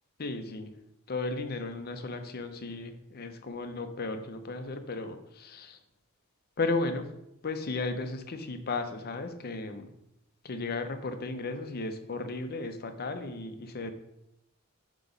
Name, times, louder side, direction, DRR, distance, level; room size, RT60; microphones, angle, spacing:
voice 1, 0.2-0.7 1.1-5.8 6.6-7.1 7.4-9.9 10.4-13.9, left 3 dB, 45° left, 8 dB, 0.7 m, -35 dB
7.6 x 3.0 x 5.4 m, 0.85 s
head